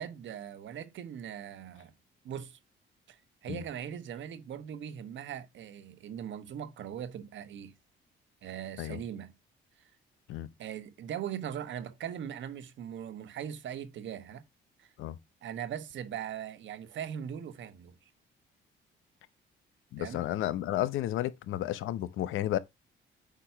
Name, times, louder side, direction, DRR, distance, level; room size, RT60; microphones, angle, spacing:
voice 1, 0.0-1.9 2.2-2.6 3.1-3.2 3.4-7.7 8.4-9.3 10.6-14.4 14.8-14.9 15.4-17.9 20.0-20.3, right 9 dB, 70° right, 1.1 m, -40 dB
voice 2, 19.9-22.6, left 13 dB, 85° left, 0.7 m, -32 dB
8.4 x 2.9 x 5.7 m
cardioid pair, 90°, 20 cm